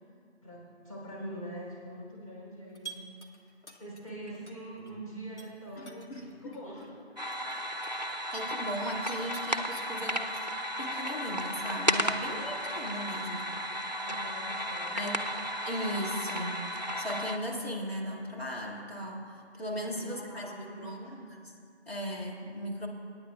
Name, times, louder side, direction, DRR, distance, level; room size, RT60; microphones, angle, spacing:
voice 1, 0.4-3.0 3.4-6.9 14.0-15.1 19.6-21.2, right 1 dB, 30° left, -6 dB, 3.4 m, -44 dB
sound 1, 2.7-4.9 5.2-9.9 10.3-13.4, right 4 dB, 90° left, 1.7 m, -51 dB
voice 2, 5.8-6.6 8.3-13.5 14.9-15.3 15.6-21.5 21.9-22.9, equal, 60° left, -2 dB, 2.1 m, -37 dB
sound 2, 7.2-17.4, equal, 40° right, 0.5 m, -34 dB
24.5 x 9.2 x 2.4 m, 2.3 s
figure-of-eight pair, 175°, 34 cm